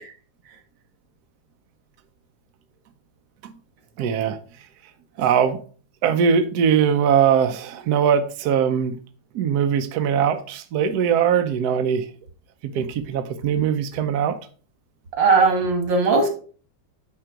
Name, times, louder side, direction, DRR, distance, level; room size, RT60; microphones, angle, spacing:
voice 1, 4.0-4.4 5.2-5.6 6.0-9.0 9.3-12.1 12.6-14.4, right 8 dB, 70° right, 8 dB, 1.1 m, -21 dB
voice 2, 15.2-16.3, right 4 dB, 90° right, 5 dB, 2.4 m, -18 dB
9.2 x 3.9 x 4.6 m, 0.41 s
omnidirectional pair, 2.0 m